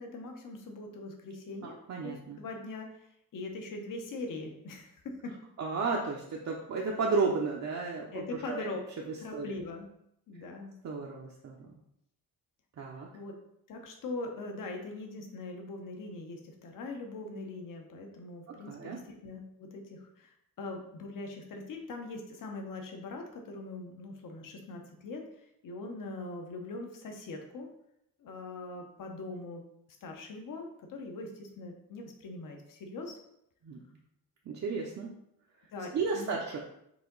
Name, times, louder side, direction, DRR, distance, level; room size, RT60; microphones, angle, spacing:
voice 1, 0.0-5.4 6.5-6.6 8.1-8.8 9.2-9.9 10.3-10.7 13.1-13.4 13.7-25.3 25.6-27.7 28.2-29.6 30.0-33.2 35.7-36.4, left 2 dB, 60° left, 3 dB, 0.9 m, -42 dB
voice 2, 1.6-2.4 5.6-8.7 9.3-9.6 10.8-11.7 12.8-13.1 18.7-19.0 33.6-33.8 34.5-35.1 35.9-36.6, right 4 dB, 50° right, -1 dB, 0.6 m, -33 dB
4.8 x 2.8 x 3.9 m, 0.76 s
cardioid pair, 125°, 37 cm